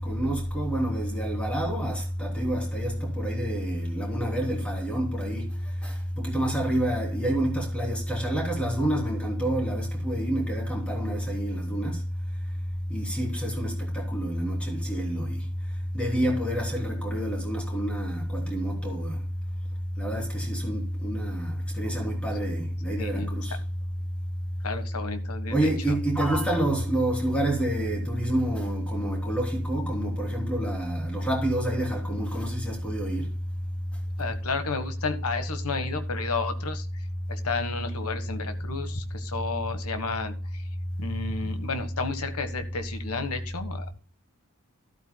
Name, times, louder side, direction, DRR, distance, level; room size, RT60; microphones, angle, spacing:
voice 1, 0.0-5.5 5.8-12.0 12.9-15.4 15.9-19.2 20.0-23.6 25.5-33.3, right 1 dB, 5° left, 3.3 m, -28 dB
voice 2, 23.0-23.3 24.6-26.0 34.2-40.6 41.0-43.9, left 4 dB, 80° left, 1.4 m, -32 dB
13.0 x 12.0 x 2.3 m
head